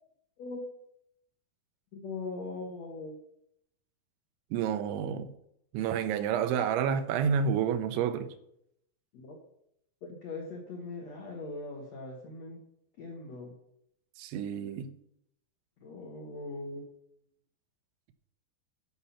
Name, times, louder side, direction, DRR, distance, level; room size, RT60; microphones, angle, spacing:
voice 1, 1.9-3.2 9.1-9.4 10.2-12.6 13.0-13.5 15.8-16.9, left 3 dB, 80° left, 1.5 m, -40 dB
voice 2, 4.5-5.3 5.7-8.3 14.2-14.9, right 7 dB, 85° right, 3.1 m, -29 dB
12.0 x 5.6 x 5.8 m
omnidirectional pair, 5.3 m